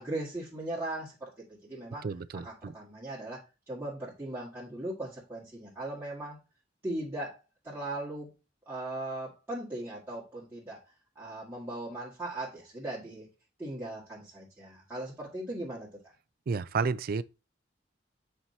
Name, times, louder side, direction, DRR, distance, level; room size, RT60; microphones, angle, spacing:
voice 1, 0.0-2.1 2.3-3.4 3.7-6.4 6.8-7.4 7.6-8.3 8.7-10.8 11.2-13.3 13.6-15.9, right 1 dB, 15° right, 2.0 m, -38 dB
voice 2, 2.0-2.7 16.5-17.2, right 5 dB, 55° right, 0.4 m, -31 dB
8.7 x 4.6 x 2.8 m
head